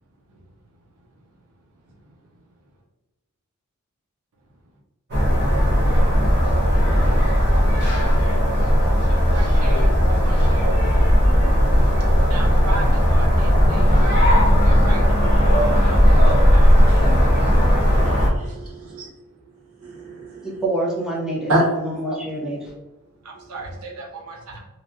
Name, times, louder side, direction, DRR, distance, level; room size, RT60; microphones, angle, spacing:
sound 1, 5.1-18.3, equal, 50° right, 0.9 m, -16 dB
voice 1, 9.1-10.8 12.3-13.9 14.6-15.0 15.4-16.2 16.5-16.7 23.2-24.6, right 2 dB, 85° right, -1 dB, 0.6 m, -36 dB
voice 2, 18.0-19.1 19.8-20.6 21.5-21.7, right 1 dB, 65° right, -5 dB, 1.3 m, -25 dB
voice 3, 20.4-22.7, right 1 dB, 5° right, -5 dB, 0.5 m, -26 dB
3.1 x 2.3 x 2.5 m, 1.1 s
head